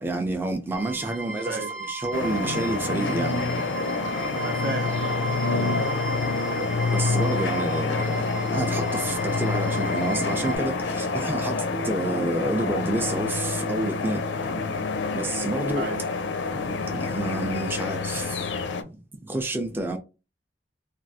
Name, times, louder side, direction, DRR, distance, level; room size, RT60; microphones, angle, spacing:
voice 1, 0.0-3.3 5.5-5.8 6.9-14.2 14.5-14.6 15.1-15.9 16.8-18.4 19.3-20.0, right 1 dB, 10° right, 0.4 m, -29 dB
sound 1, 0.7-10.6, right 3 dB, 85° right, 1.1 m, -35 dB
voice 2, 1.2-1.7 4.3-5.8 6.5-6.8 15.8-16.0, right 3 dB, 65° right, 0.7 m, -35 dB
sound 2, 2.1-18.8, left 4 dB, 80° left, 0.5 m, -27 dB
3.2 x 2.3 x 2.7 m
head